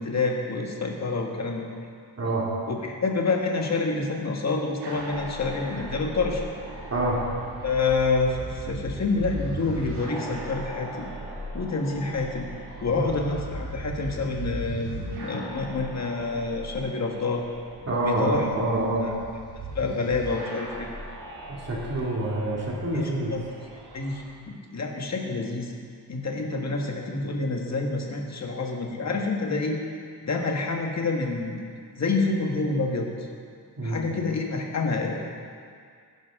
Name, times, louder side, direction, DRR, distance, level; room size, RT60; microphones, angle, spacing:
voice 1, 0.0-1.7 2.7-6.5 7.6-11.1 11.5-12.5 12.8-17.4 18.0-18.5 19.7-20.9 22.9-23.4 23.9-25.7 26.1-29.8 30.2-31.5 31.9-33.1 33.8-35.3, left 3 dB, 40° left, 1 dB, 1.7 m, -27 dB
sound 1, 4.8-24.2, right 1 dB, 75° right, 3.1 m, -38 dB
voice 2, 17.9-19.1 21.6-23.4 33.8-34.0, right 1 dB, 40° right, -4 dB, 2.6 m, -26 dB
16.0 x 10.5 x 3.8 m, 2.2 s
cardioid pair, 115°, 40 cm